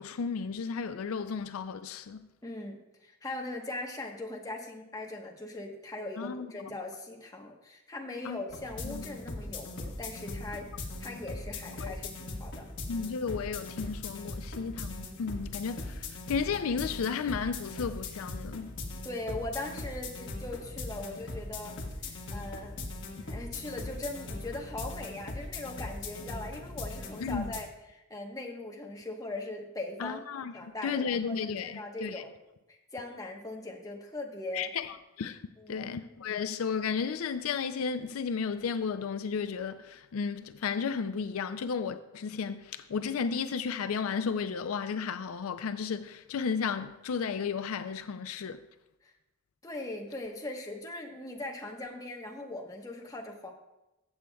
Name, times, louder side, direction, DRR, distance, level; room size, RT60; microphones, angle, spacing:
voice 1, 0.0-2.2 6.2-6.5 8.2-8.4 8.8-9.0 11.8-11.9 12.9-18.7 27.2-27.5 30.0-30.5 30.8-32.2 34.5-34.9 35.2-35.4 35.7-48.6, left 6 dB, 80° left, 0.4 m, -33 dB
voice 2, 2.4-10.7 11.0-12.7 19.0-22.8 23.2-30.3 30.5-32.3 32.7-34.7 35.6-35.9 49.0-49.1 49.6-53.5, left 2 dB, 15° left, 1.1 m, -40 dB
sound 1, 8.5-27.6, left 2 dB, 60° left, 1.2 m, -40 dB
15.0 x 7.6 x 2.3 m
head